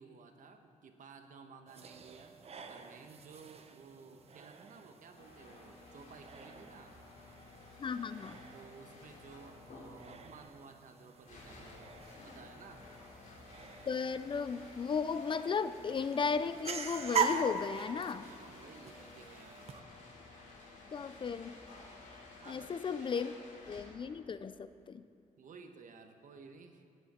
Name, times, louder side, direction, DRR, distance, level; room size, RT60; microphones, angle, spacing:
voice 1, 0.0-2.4 2.7-7.0 8.5-11.9 12.2-12.9 18.2-19.7 22.4-23.1 25.4-26.8, right 5 dB, 80° right, 6 dB, 1.1 m, -55 dB
sound 1, 1.7-19.8, right 6 dB, 50° right, 0.8 m, -43 dB
sound 2, 5.1-24.2, left 3 dB, 80° left, 3.0 m, -54 dB
voice 2, 7.8-8.4 13.9-18.3 20.9-21.6 22.5-23.3 23.7-25.0, left 5 dB, 40° left, 13 dB, 0.4 m, -35 dB
17.0 x 10.5 x 4.3 m, 2.6 s
wide cardioid pair, 160°, 13 cm